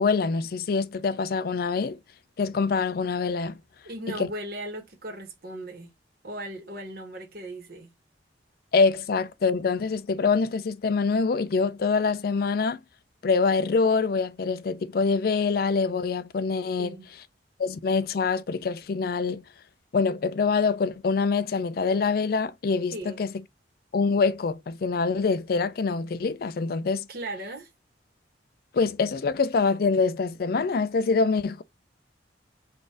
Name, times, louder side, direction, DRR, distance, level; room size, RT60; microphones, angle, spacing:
voice 1, 0.0-2.0 2.4-3.6 4.1-4.3 8.7-12.8 13.2-17.0 17.6-19.4 19.9-23.4 23.9-27.1 28.7-31.6, left 4 dB, 55° left, 0.4 m, -25 dB
voice 2, 3.8-5.9 6.2-7.9 16.8-17.1 22.9-23.2 27.1-27.7, right 1 dB, 55° right, 1.3 m, -37 dB
4.1 x 2.5 x 3.5 m
head